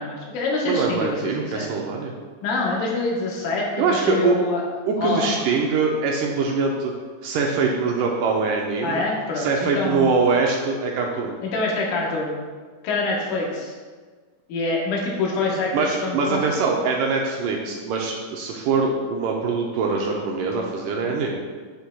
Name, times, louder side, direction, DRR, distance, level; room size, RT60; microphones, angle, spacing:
voice 1, 0.0-1.7 2.4-4.6 5.0-5.4 8.8-10.2 11.4-12.4 12.8-13.7 14.5-16.4, left 3 dB, 75° left, -2 dB, 2.7 m, -25 dB
voice 2, 0.7-2.1 3.8-4.4 4.9-6.9 7.2-9.0 9.4-11.4 15.7-21.4, right 4 dB, 80° right, 0 dB, 2.1 m, -23 dB
7.8 x 7.1 x 2.3 m, 1.5 s
omnidirectional pair, 3.9 m